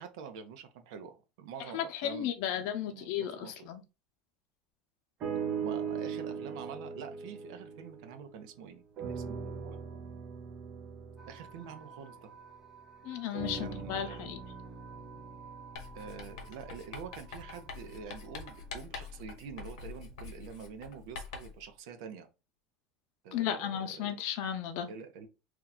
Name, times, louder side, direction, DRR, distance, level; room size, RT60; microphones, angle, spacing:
voice 1, 0.0-3.7 5.6-9.8 11.2-12.3 13.6-14.3 15.9-22.3 23.2-24.1 24.9-25.3, right 7 dB, 80° right, 0.6 m, -46 dB
voice 2, 1.7-3.8 13.0-14.4 23.3-24.9, left 10 dB, 65° left, 0.6 m, -34 dB
sound 1, 5.2-8.6 9.0-12.7 13.3-17.5 18.2-18.3, right 6 dB, 45° right, 0.7 m, -40 dB
sound 2, 11.2-18.7, right 7 dB, 10° right, 0.7 m, -54 dB
Writing, 15.8-21.6, left 5 dB, 80° left, 0.9 m, -45 dB
2.9 x 2.3 x 3.9 m
supercardioid pair, 125°, 3 cm